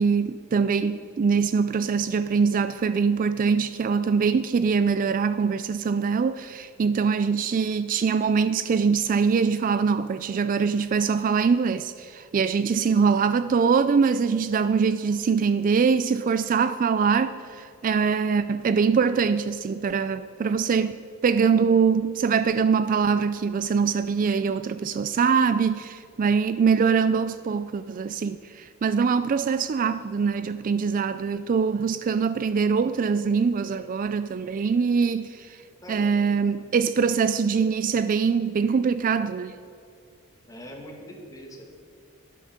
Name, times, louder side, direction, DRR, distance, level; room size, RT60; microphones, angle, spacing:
voice 1, 0.0-21.0 21.2-35.6 35.9-39.5, right 5 dB, 40° right, 0.3 m, -23 dB
voice 2, 40.5-41.6, equal, 15° left, 1.9 m, -42 dB
12.0 x 11.5 x 5.1 m
head